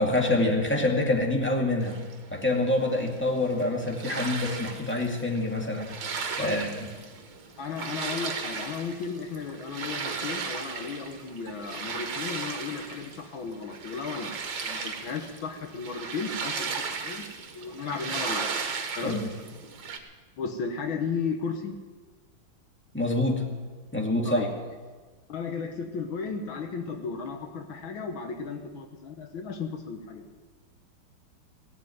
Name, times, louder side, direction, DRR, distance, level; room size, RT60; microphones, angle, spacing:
voice 1, 0.0-2.0 2.3-6.9 19.0-19.3 22.9-23.4 23.9-24.5, left 2 dB, 5° left, 0 dB, 2.0 m, -26 dB
sound 1, 1.8-20.0, right 5 dB, 65° right, 2.0 m, -36 dB
voice 2, 7.6-14.3 14.6-17.2 17.5-18.5 19.0-19.2 20.4-21.8 24.2-24.5 25.3-30.3, left 5 dB, 70° left, 5 dB, 1.8 m, -34 dB
18.0 x 7.7 x 9.3 m, 1.4 s
omnidirectional pair, 2.3 m